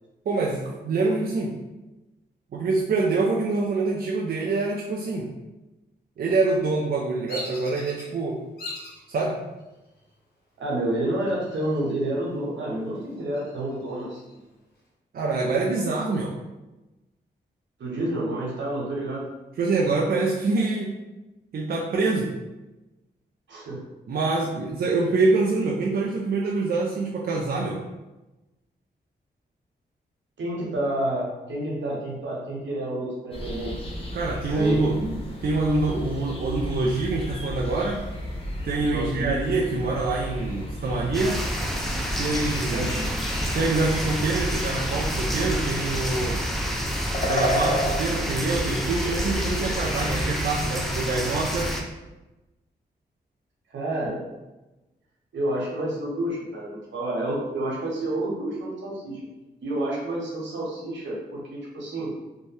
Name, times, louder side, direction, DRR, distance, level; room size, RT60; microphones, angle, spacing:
voice 1, 0.3-1.5 2.5-5.3 6.2-8.4 9.1-9.4 15.1-16.3 19.6-20.9 21.5-22.3 24.1-27.8 34.1-35.0 35.4-38.0 38.6-41.4 42.2-42.9 43.5-46.4 47.2-51.7, right 3 dB, 55° right, -3 dB, 0.4 m, -25 dB
Bird vocalization bird call bird song, 7.3-8.0 8.6-9.0 9.6-10.1 11.3-12.0 12.4-12.5 12.9-14.4, left 1 dB, 60° left, 1.4 m, -39 dB
voice 2, 10.6-14.2 17.8-19.3 23.5-23.8 30.4-33.9 34.5-35.1 38.8-39.3 42.7-43.1 53.7-54.2 55.3-59.2 59.6-62.1, right 1 dB, 80° right, -4 dB, 1.0 m, -29 dB
sound 1, 33.3-50.3, equal, 30° left, 0.8 m, -32 dB
sound 2, 41.1-51.8, equal, ahead, 0.5 m, -29 dB
2.6 x 2.1 x 3.2 m, 1.1 s
cardioid pair, 55°, 19 cm